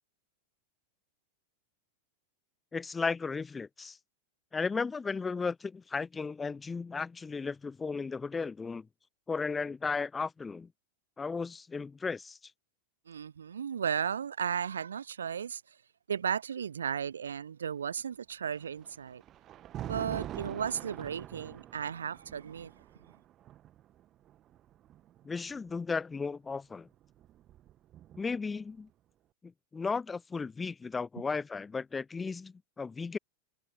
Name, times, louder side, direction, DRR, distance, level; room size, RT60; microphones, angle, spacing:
voice 1, 2.7-4.0 4.5-8.9 9.3-10.7 11.2-12.4 25.2-26.9 28.2-28.9 29.4-33.2, left 4 dB, 15° left, 0.4 m, -35 dB
voice 2, 13.1-15.6 16.1-19.2 19.8-22.7, right 7 dB, 70° right, 0.6 m, -35 dB
Thunder, 18.5-25.7 26.8-28.5, right 12 dB, 30° right, 1.5 m, -45 dB
figure-of-eight pair, 90°, 0 cm